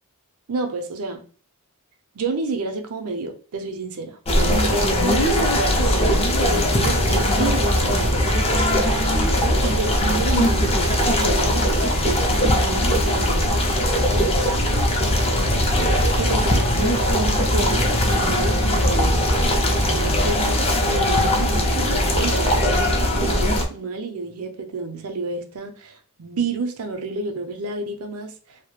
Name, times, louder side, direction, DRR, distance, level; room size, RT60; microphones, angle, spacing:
voice 1, 0.5-1.3 2.1-4.2 4.4-8.3 9.2-14.8 15.8-17.9 18.1-19.2 19.7-28.7, right 3 dB, 75° right, 0.5 m, -30 dB
sound 1, 4.2-23.6, left 1 dB, 25° left, 0.4 m, -20 dB
2.2 x 2.0 x 2.9 m
head